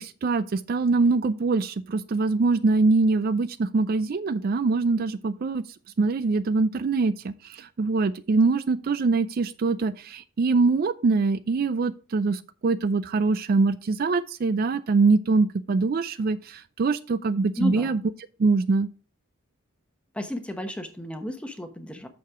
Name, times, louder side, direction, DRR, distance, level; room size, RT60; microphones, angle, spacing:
voice 1, 0.0-5.6 6.0-18.0 18.4-18.9, right 3 dB, 45° right, 0.3 m, -23 dB
voice 2, 17.6-17.9 20.1-22.1, left 1 dB, 5° left, 1.0 m, -33 dB
8.5 x 6.7 x 3.6 m
head